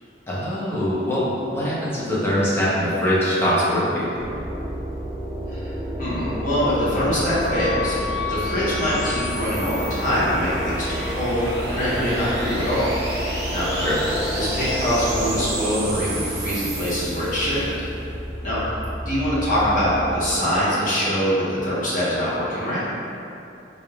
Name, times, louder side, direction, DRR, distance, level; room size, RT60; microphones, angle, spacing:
voice 1, 0.3-4.1 13.8-14.0, equal, 15° left, -9 dB, 0.8 m, -22 dB
sound 1, 4.2-20.2, equal, 20° right, 0.5 m, -30 dB
sound 2, 5.3-17.7, right 2 dB, 60° right, 0.8 m, -34 dB
voice 2, 5.5-7.9 8.3-12.9 13.2-13.7 14.3-17.7 18.4-18.6 19.0-22.8, equal, 50° left, -10 dB, 1.2 m, -24 dB
Wind instrument woodwind instrument, 6.7-11.5, left 6 dB, 90° left, 1.2 m, -34 dB
4.0 x 3.4 x 2.3 m, 2.7 s
head